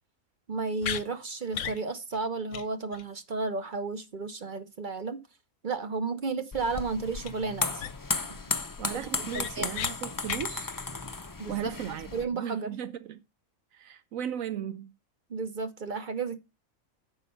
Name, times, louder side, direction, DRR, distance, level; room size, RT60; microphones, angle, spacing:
voice 1, 0.5-5.2 5.6-7.8 8.3-8.5 9.3-9.8 11.4-11.7 12.1-12.7 15.3-16.4, right 4 dB, 45° right, 0.8 m, -33 dB
sound 1, 0.8-1.0 1.5-1.8 2.1-2.2 2.5-2.6 2.9-3.0 7.2-7.3 7.8-8.2 8.6-8.7 9.0-9.9 10.2-10.5, left 9 dB, 70° left, 1.0 m, -35 dB
sound 2, 6.5-12.2, left 3 dB, 30° left, 0.4 m, -34 dB
voice 2, 8.8-10.7 11.5-12.1 12.3-13.2 13.7-14.9, right 10 dB, 75° right, 1.0 m, -36 dB
9.7 x 5.7 x 5.4 m
omnidirectional pair, 1.4 m